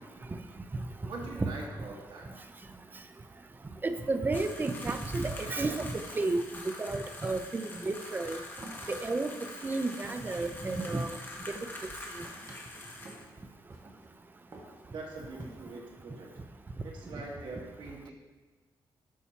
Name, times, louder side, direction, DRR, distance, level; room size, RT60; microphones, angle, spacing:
voice 1, 1.1-2.3 14.9-16.3 16.8-18.1, right 2 dB, 75° right, -1 dB, 1.8 m, -43 dB
voice 2, 3.8-6.4 6.8-8.4 8.9-9.3 9.6-11.1, right 3 dB, 25° right, 9 dB, 0.6 m, -31 dB
sound 1, 4.3-13.3, left 2 dB, 25° left, 1.4 m, -45 dB
sound 2, 7.9-8.2 8.6-8.9 9.3-9.6 9.9-11.1 11.4-11.9 12.3-12.6 13.1-13.3 13.7-14.1 14.5-15.0 15.4-15.8, right 2 dB, 45° right, 1.7 m, -50 dB
11.0 x 6.8 x 2.9 m, 1.4 s
cardioid pair, 105°, 8 cm